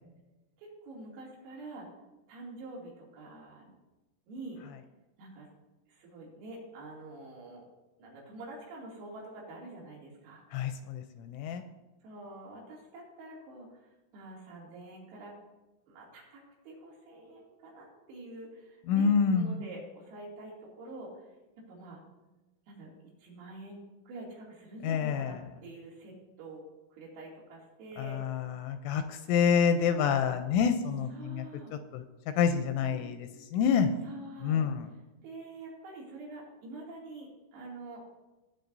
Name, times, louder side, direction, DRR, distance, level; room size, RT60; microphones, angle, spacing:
voice 1, 0.6-1.9 2.3-3.7 4.3-4.6 5.2-5.5 5.9-7.7 8.0-10.4 12.0-15.4 15.9-21.3 21.7-22.0 22.7-22.9 23.2-26.6 26.9-28.3 31.1-31.7 32.9-33.1 34.0-34.7 35.2-38.1, right 2 dB, 90° right, -4 dB, 5.6 m, -46 dB
voice 2, 10.5-11.6 18.9-19.6 24.8-25.4 28.0-31.5 31.7-32.0 32.4-33.3 33.5-33.9 34.4-34.9, left 6 dB, 85° left, 7 dB, 2.9 m, -27 dB
18.0 x 9.1 x 2.7 m, 1.1 s
omnidirectional pair, 5.9 m